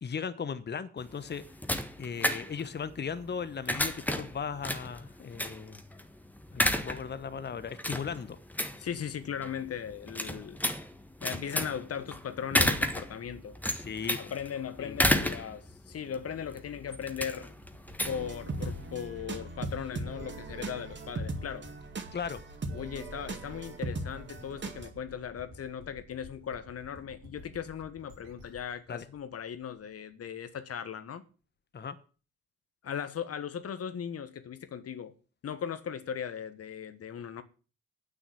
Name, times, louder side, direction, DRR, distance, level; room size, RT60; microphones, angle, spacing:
voice 1, 0.0-1.4 2.0-5.8 6.5-8.4 13.7-14.3 14.8-15.0 22.1-22.4 28.9-29.0 31.7-32.0, left 6 dB, 35° left, 1.1 m, -37 dB
sound 1, 1.0-19.0, left 1 dB, 5° left, 1.4 m, -33 dB
voice 2, 8.8-10.6 11.2-13.6 14.2-17.5 18.0-21.7 22.7-31.2 32.8-35.1 35.4-37.4, left 8 dB, 50° left, 1.4 m, -38 dB
sound 2, 17.6-30.2, left 1 dB, 80° right, 2.4 m, -53 dB
sound 3, 18.0-24.9, right 2 dB, 35° right, 2.4 m, -39 dB
9.4 x 6.2 x 8.3 m
hypercardioid pair, 40°, 31 cm